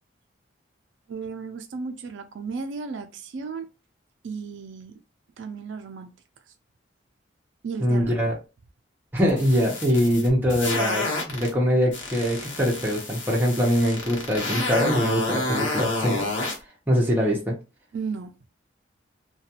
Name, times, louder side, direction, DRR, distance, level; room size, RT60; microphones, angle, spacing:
voice 1, 1.1-3.7 4.2-5.0 5.4-6.1 7.6-8.1 10.5-10.6 17.9-18.3, right 5 dB, 75° right, 0.4 m, -34 dB
voice 2, 7.8-8.3 9.1-16.2 16.9-17.6, equal, 10° right, 0.7 m, -23 dB
sound 1, 9.3-11.5 11.9-16.6, left 2 dB, 80° left, 0.9 m, -29 dB
2.4 x 2.3 x 2.8 m
head